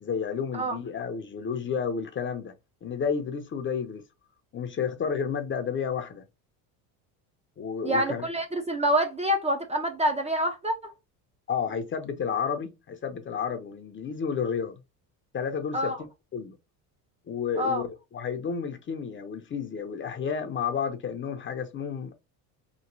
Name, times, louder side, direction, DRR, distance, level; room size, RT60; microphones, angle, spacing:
voice 1, 0.0-2.5 2.8-4.0 4.5-6.2 7.6-8.3 11.5-14.8 15.3-15.9 16.3-16.6 17.3-22.2, left 6 dB, 30° left, 0.6 m, -31 dB
voice 2, 7.8-10.9 15.7-16.0 17.6-17.8, equal, 15° right, 0.5 m, -26 dB
3.0 x 2.8 x 2.6 m
supercardioid pair, 105°, 41 cm